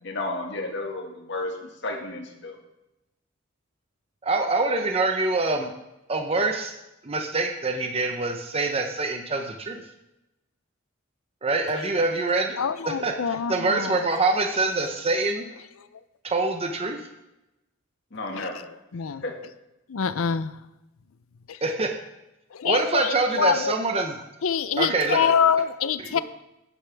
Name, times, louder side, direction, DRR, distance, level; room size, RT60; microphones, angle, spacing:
voice 1, 0.0-2.6 18.1-18.6 19.2-19.3, left 2 dB, 60° left, 2 dB, 1.8 m, -32 dB
voice 2, 4.2-5.7 6.1-6.7 7.0-9.8 11.4-12.6 12.9-13.1 13.5-15.5 16.2-17.0 21.6-21.9 22.6-24.2 24.8-25.3 26.0-26.2, right 3 dB, 30° right, 4 dB, 0.8 m, -25 dB
voice 3, 12.6-14.0 18.9-19.2 19.9-20.5 22.6-23.7 24.4-26.2, left 7 dB, 90° left, 14 dB, 0.5 m, -25 dB
11.5 x 10.0 x 3.5 m, 0.94 s
head